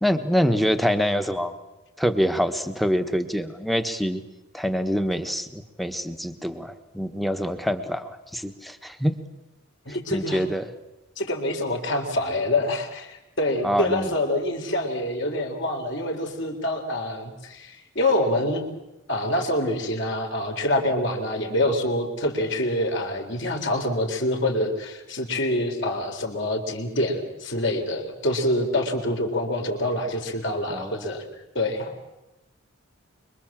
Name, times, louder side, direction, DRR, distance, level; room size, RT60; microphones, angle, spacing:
voice 1, 0.0-1.6 2.0-4.2 4.5-9.1 10.1-10.7 13.6-14.1 30.7-31.1, equal, ahead, 8 dB, 1.3 m, -25 dB
voice 2, 9.9-10.4 11.2-18.6 19.1-31.2 31.5-31.9, left 1 dB, 55° left, 3 dB, 4.0 m, -26 dB
25.5 x 23.5 x 7.5 m, 0.99 s
head